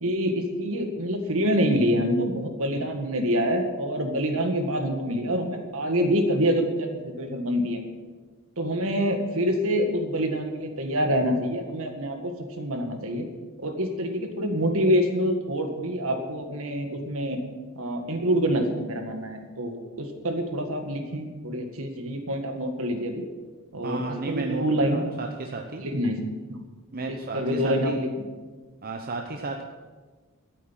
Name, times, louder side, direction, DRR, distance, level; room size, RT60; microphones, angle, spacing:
voice 1, 0.0-7.8 8.6-13.3 13.6-17.4 17.8-23.3 23.7-25.0 25.8-26.2 26.5-26.6 27.1-28.1, equal, 65° right, 5 dB, 1.9 m, -26 dB
voice 2, 23.8-25.8 26.9-28.0 28.8-29.6, right 3 dB, 45° right, 3 dB, 0.9 m, -33 dB
13.0 x 8.7 x 7.5 m, 1.4 s
head